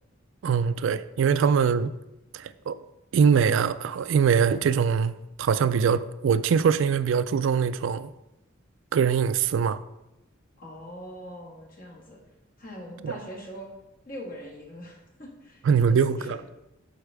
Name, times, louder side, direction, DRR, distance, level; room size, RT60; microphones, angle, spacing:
voice 1, 0.4-1.9 2.3-2.8 3.1-8.1 8.9-9.8 13.0-13.2 15.7-16.4, right 6 dB, 70° right, 0.3 m, -23 dB
voice 2, 10.6-12.2 12.6-13.7 14.0-16.4, equal, 45° left, 1.5 m, -42 dB
8.1 x 4.7 x 3.4 m
head